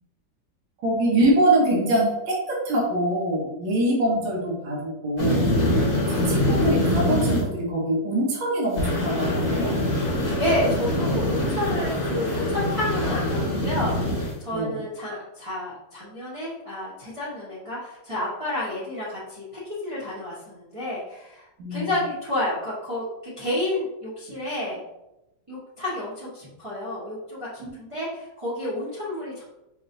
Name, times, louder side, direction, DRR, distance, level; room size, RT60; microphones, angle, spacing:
voice 1, 0.8-5.5 6.1-9.8 14.5-14.8 21.6-21.9 27.6-27.7, right 1 dB, 75° right, -3 dB, 1.7 m, -24 dB
sound 1, 5.2-7.4 8.8-14.3, left 1 dB, 40° left, 0.9 m, -24 dB
voice 2, 10.4-24.8 25.5-29.4, left 1 dB, 55° right, -9 dB, 0.3 m, -30 dB
4.6 x 3.0 x 2.6 m, 0.93 s
omnidirectional pair, 2.2 m